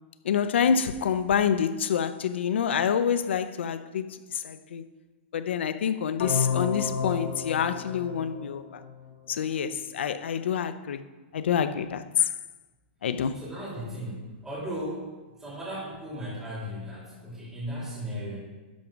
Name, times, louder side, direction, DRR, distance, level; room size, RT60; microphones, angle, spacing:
voice 1, 0.2-4.8 5.3-8.8 9.3-11.0 11.3-12.3 13.0-13.4, left 7 dB, 85° left, 0.7 m, -27 dB
sound 1, 6.2-9.2, left 6 dB, 65° left, 2.3 m, -31 dB
voice 2, 13.3-15.1 15.4-18.4, equal, 10° right, 3.2 m, -36 dB
11.5 x 5.2 x 5.9 m
hypercardioid pair, 155°, 6 cm